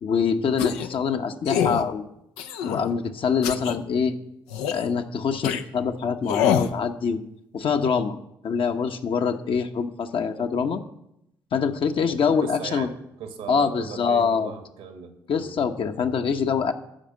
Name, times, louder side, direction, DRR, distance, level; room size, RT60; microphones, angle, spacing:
voice 1, 0.0-2.1 2.6-4.2 4.7-7.2 7.5-8.2 8.4-10.8 11.5-12.9 13.5-14.5 15.3-16.7, left 6 dB, 55° left, 6 dB, 1.0 m, -24 dB
sound 1, 0.6-0.9 1.4-1.8 2.4-2.9 3.4-3.7 4.5-4.9 5.4-5.6 6.3-6.7, left 9 dB, 85° left, 0.6 m, -25 dB
voice 2, 12.3-15.5, right 6 dB, 80° right, 6 dB, 1.7 m, -38 dB
13.0 x 5.1 x 7.6 m, 0.82 s
hypercardioid pair, 50°, 10 cm